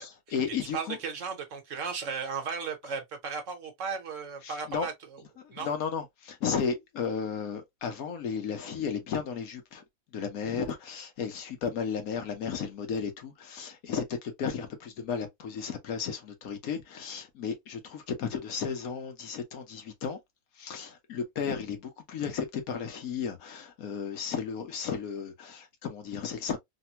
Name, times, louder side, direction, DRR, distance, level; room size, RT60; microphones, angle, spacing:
voice 1, 0.0-1.0 4.4-4.9 5.4-9.8 10.1-20.2 20.6-26.6, left 6 dB, 80° left, 1.3 m, -34 dB
voice 2, 0.7-4.9 5.5-5.7, right 5 dB, 65° right, 1.2 m, -35 dB
3.4 x 2.2 x 2.7 m
omnidirectional pair, 1.5 m